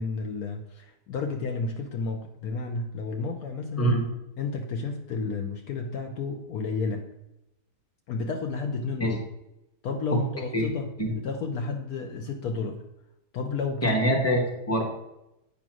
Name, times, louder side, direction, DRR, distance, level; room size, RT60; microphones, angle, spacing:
voice 1, 0.0-3.9 4.4-7.0 8.1-9.2 9.8-12.8 13.3-14.1, left 4 dB, 70° left, 4 dB, 1.1 m, -31 dB
voice 2, 13.8-14.8, right 1 dB, 10° left, 0 dB, 1.2 m, -24 dB
8.5 x 3.5 x 6.0 m, 0.88 s
omnidirectional pair, 1.8 m